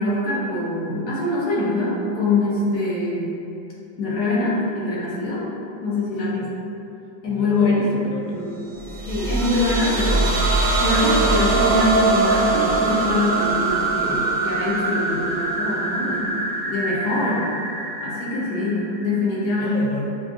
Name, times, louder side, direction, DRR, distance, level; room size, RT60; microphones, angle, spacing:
voice 1, 0.0-3.4 4.0-5.4 5.8-6.5 7.2-7.9 8.3-8.6 9.1-10.4 10.8-17.4 18.0-19.8, left 2 dB, 65° left, -6 dB, 1.2 m, -23 dB
voice 2, 7.3-9.2 17.2-17.5 19.6-20.1, left 2 dB, 80° left, -1 dB, 1.3 m, -34 dB
sound 1, 8.8-19.4, right 2 dB, 70° right, 1.3 m, -23 dB
5.9 x 2.4 x 2.5 m, 2.7 s
omnidirectional pair, 2.1 m